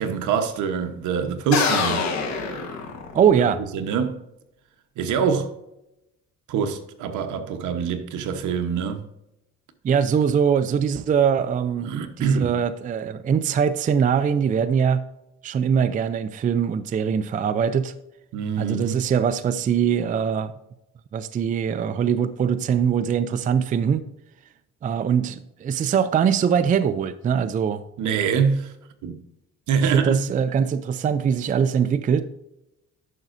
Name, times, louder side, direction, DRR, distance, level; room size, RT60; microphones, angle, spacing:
voice 1, 0.0-2.1 3.4-4.2 5.0-5.5 6.5-9.0 11.8-12.6 18.3-19.0 28.0-28.7 29.0-29.2 29.7-30.2, right 6 dB, 75° right, 1.1 m, -24 dB
sound 1, 1.5-3.5, left 5 dB, 60° left, 1.4 m, -25 dB
voice 2, 3.1-3.6 9.8-11.9 12.2-15.0 15.4-17.9 18.6-20.5 21.1-24.0 24.8-27.8 29.8-32.2, right 7 dB, 25° right, 0.4 m, -22 dB
11.0 x 5.9 x 2.6 m
cardioid pair, 135°, 30 cm